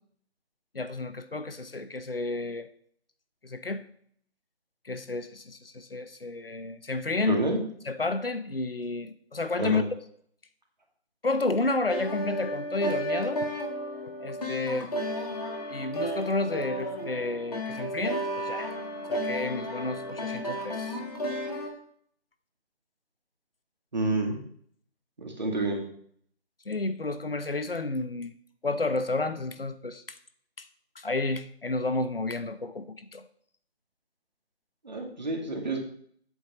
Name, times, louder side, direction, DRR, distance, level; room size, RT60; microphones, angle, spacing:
voice 1, 0.7-2.7 3.4-3.8 4.8-7.5 7.8-9.8 11.2-13.5 13.9-14.9 15.7-18.7 19.1-21.0 26.7-28.3 28.6-30.2 30.6-30.7 31.0-33.2, left 3 dB, 60° left, 11 dB, 1.0 m, -31 dB
voice 2, 7.3-7.6 9.6-9.8 23.9-24.4 25.2-25.8 34.8-35.8, right 2 dB, 45° right, 2 dB, 2.0 m, -28 dB
sound 1, 11.9-21.7, equal, 35° left, 1.7 m, -33 dB
13.0 x 8.5 x 3.1 m, 0.62 s
figure-of-eight pair, 160°, 32 cm